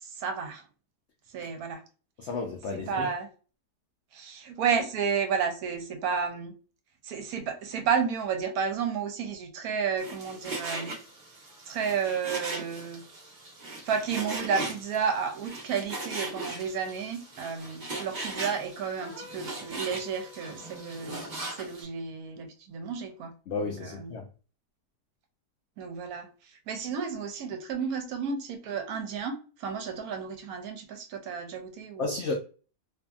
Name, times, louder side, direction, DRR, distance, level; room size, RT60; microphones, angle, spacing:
voice 1, 0.0-0.6 1.3-1.8 2.7-3.3 4.1-6.5 7.0-10.9 11.7-13.0 13.8-21.2 21.5-24.1 25.8-32.2, right 6 dB, 70° right, 1.0 m, -32 dB
voice 2, 2.2-3.1 23.5-24.3 32.0-32.3, left 3 dB, 85° left, 0.6 m, -32 dB
Frying (food), 10.0-21.8, right 2 dB, 40° right, 0.7 m, -39 dB
sound 1, 19.0-21.2, left 2 dB, 20° right, 1.2 m, -50 dB
2.6 x 2.6 x 2.3 m
omnidirectional pair, 1.8 m